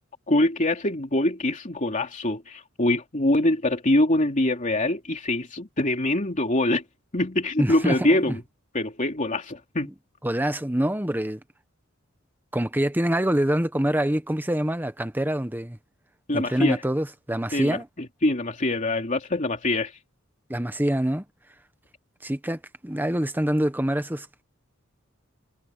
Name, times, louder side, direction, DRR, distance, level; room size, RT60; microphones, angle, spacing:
voice 1, 0.3-6.8 7.1-8.4 8.7-9.9 16.3-16.8 17.5-19.9, left 1 dB, 40° left, 3.1 m, -24 dB
voice 2, 7.6-8.4 10.2-11.4 12.5-15.8 16.3-17.9 20.5-21.2 22.2-24.4, right 1 dB, 10° right, 1.3 m, -25 dB
head